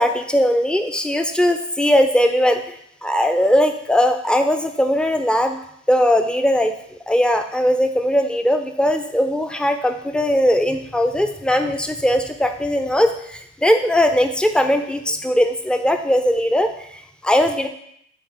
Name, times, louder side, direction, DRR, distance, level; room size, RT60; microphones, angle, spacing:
voice 1, 0.0-2.7 3.0-6.7 7.1-17.7, equal, ahead, 7 dB, 0.5 m, -19 dB
8.2 x 3.9 x 4.2 m, 0.71 s
figure-of-eight pair, 70°, 38 cm